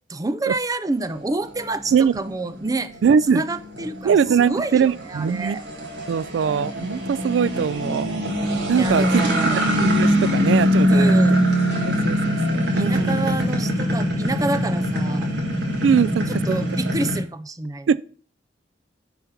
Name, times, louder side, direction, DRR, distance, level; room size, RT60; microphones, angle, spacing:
voice 1, 0.1-3.0 3.3-5.6 8.8-9.6 10.9-11.4 12.8-15.3 16.3-17.9, right 2 dB, 20° right, 0.5 m, -28 dB
sound 1, 1.1-17.2, equal, 65° right, 1.9 m, -23 dB
voice 2, 3.0-3.4 4.0-5.6 6.1-9.3 9.8-11.2 11.8-13.2 15.8-16.6 16.9-17.0 17.9-18.0, right 7 dB, 85° right, 0.3 m, -21 dB
9.6 x 4.0 x 5.8 m
head